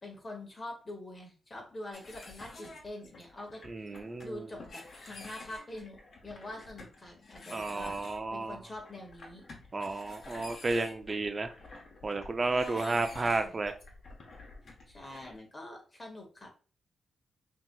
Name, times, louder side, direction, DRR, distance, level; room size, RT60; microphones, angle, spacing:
voice 1, 0.0-3.6 4.2-8.0 8.3-9.4 12.4-13.6 14.6-16.5, left 1 dB, 30° left, 1 dB, 1.7 m, -45 dB
sound 1, 1.9-15.4, left 2 dB, 55° left, 1.0 m, -50 dB
voice 2, 3.7-4.4 7.5-8.6 9.7-11.5 12.0-13.7, right 3 dB, 35° right, 7 dB, 0.5 m, -32 dB
5.8 x 2.9 x 2.3 m, 0.36 s
cardioid pair, 75°, 0 cm